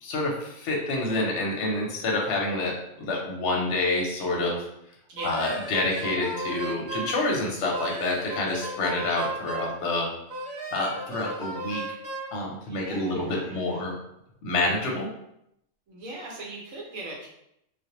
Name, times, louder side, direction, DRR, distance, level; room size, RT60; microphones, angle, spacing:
voice 1, 0.0-4.6 5.2-10.1 10.7-11.9 12.3-14.0 14.4-15.1, left 2 dB, 65° left, -1 dB, 0.8 m, -28 dB
Wind instrument woodwind instrument, 5.2-7.2 7.7-9.8 10.3-12.3, right 2 dB, 45° right, 1.0 m, -35 dB
voice 2, 12.7-13.9 15.9-17.3, right 2 dB, 75° right, -2 dB, 1.1 m, -40 dB
2.5 x 2.0 x 2.8 m, 0.78 s
omnidirectional pair, 1.5 m